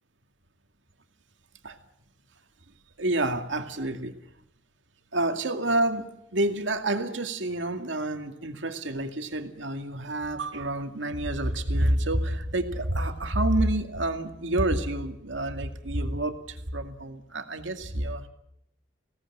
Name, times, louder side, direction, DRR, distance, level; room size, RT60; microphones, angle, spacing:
voice 1, 3.0-4.1 5.1-18.3, right 1 dB, 90° right, 6 dB, 2.3 m, -28 dB
22.0 x 17.5 x 8.8 m, 0.76 s
head